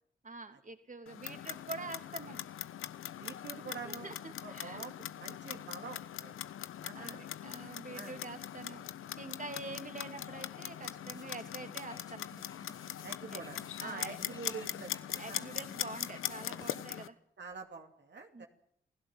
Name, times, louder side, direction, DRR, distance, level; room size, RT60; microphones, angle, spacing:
voice 1, 0.2-2.4 3.6-4.8 5.5-5.7 6.9-8.8 9.2-12.3 13.3-13.4 13.8-14.2 15.2-17.2 18.3-18.5, right 3 dB, 40° right, 7 dB, 3.1 m, -46 dB
Clock, 1.1-17.1, left 11 dB, 80° left, 1.0 m, -41 dB
voice 2, 3.2-4.1 4.4-6.4 6.8-7.2 7.9-8.1 13.0-15.4 17.4-18.5, right 4 dB, 55° right, 3 dB, 2.8 m, -46 dB
sound 1, 10.7-17.0 17.5-17.6, left 2 dB, 20° left, 3.3 m, -57 dB
28.5 x 16.0 x 7.8 m, 0.67 s
supercardioid pair, 45°, 21 cm